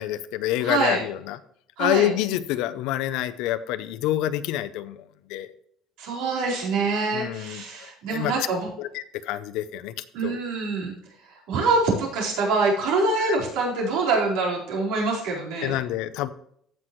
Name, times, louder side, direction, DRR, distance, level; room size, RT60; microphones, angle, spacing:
voice 1, 0.0-1.4 1.8-5.0 5.3-5.5 7.1-7.6 8.1-8.3 8.8-9.9 10.2-10.4 13.3-13.4 15.6-16.3, left 13 dB, 75° left, 13 dB, 0.6 m, -27 dB
voice 2, 0.6-1.0 1.8-2.1 6.0-8.7 10.1-10.9 11.5-15.7, right 3 dB, 80° right, -3 dB, 4.3 m, -25 dB
15.5 x 6.1 x 3.1 m, 0.67 s
cardioid pair, 170°, 0 cm